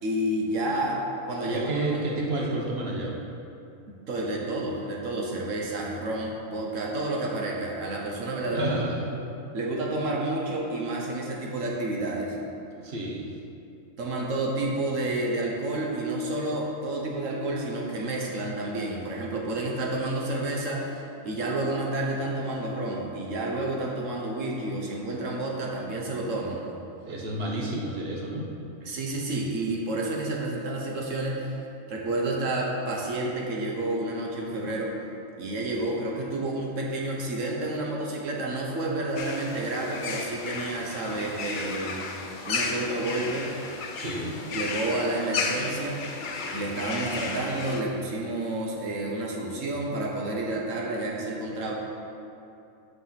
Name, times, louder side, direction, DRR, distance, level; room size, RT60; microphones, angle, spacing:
voice 1, 0.0-1.0 1.3-1.9 3.9-8.7 9.1-9.2 9.5-12.3 14.0-20.9 21.2-26.6 28.9-31.6 31.9-34.9 35.4-42.0 42.5-43.5 44.5-46.0 46.5-51.7, right 2 dB, 70° right, -1 dB, 1.3 m, -30 dB
voice 2, 1.4-3.2 8.5-9.2 12.8-13.3 27.0-28.5 44.0-44.4, right 1 dB, 50° right, -2 dB, 1.2 m, -30 dB
sound 1, 39.2-47.8, left 4 dB, 55° left, 0.6 m, -34 dB
6.1 x 5.3 x 5.8 m, 2.7 s
omnidirectional pair, 1.4 m